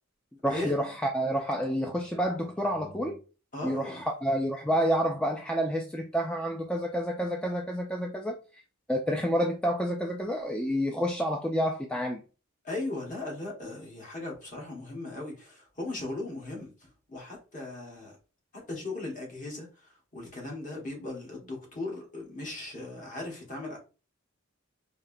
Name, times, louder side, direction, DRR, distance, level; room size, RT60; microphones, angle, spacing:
voice 1, 0.4-3.2 3.6-8.6 8.9-12.2, equal, 5° left, 0.3 m, -29 dB
voice 2, 3.5-4.0 12.6-16.7 17.1-18.1 18.5-23.8, left 2 dB, 35° left, 1.4 m, -37 dB
4.4 x 2.8 x 2.6 m
head